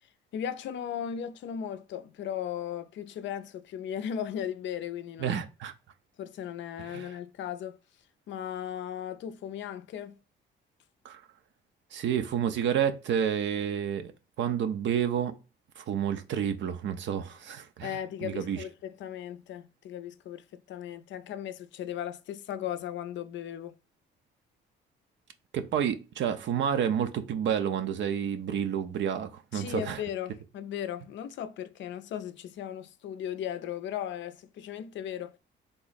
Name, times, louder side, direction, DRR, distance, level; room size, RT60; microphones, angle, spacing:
voice 1, 0.3-5.4 6.2-7.8 8.3-10.2 17.8-23.8 29.5-35.4, left 9 dB, 70° left, 0.4 m, -37 dB
voice 2, 5.2-5.7 6.9-7.2 11.0-11.2 11.9-14.1 14.4-15.4 15.8-18.6 25.5-30.0, right 8 dB, 70° right, 0.6 m, -30 dB
3.6 x 2.0 x 4.0 m
cardioid pair, 90°, 20 cm